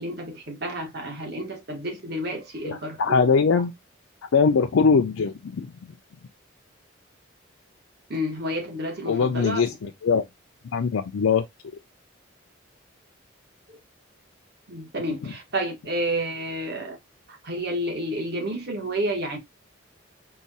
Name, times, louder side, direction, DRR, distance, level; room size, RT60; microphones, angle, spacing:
voice 1, 0.0-3.2 8.1-9.6 13.7-13.8 14.7-17.0 17.3-19.4, right 1 dB, 50° right, 1.4 m, -30 dB
voice 2, 2.6-3.7 4.3-5.7 9.1-10.2 10.7-11.5, left 5 dB, 80° left, 0.4 m, -21 dB
4.7 x 2.3 x 4.0 m
head